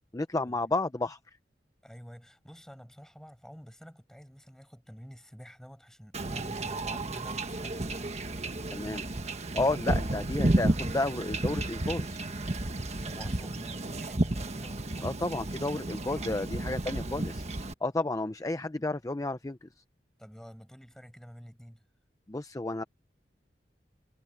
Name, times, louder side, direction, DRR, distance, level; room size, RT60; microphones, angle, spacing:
voice 1, 0.1-1.2 8.7-9.1 9.5-12.2 15.0-17.5 17.8-19.7 22.3-22.8, left 2 dB, 20° left, 0.6 m, -32 dB
voice 2, 1.8-8.2 12.9-16.5 20.2-21.8, equal, 5° left, 5.6 m, -49 dB
Wind / Ocean / Boat Water vehicle, 6.1-17.7, right 1 dB, 40° right, 1.4 m, -32 dB
head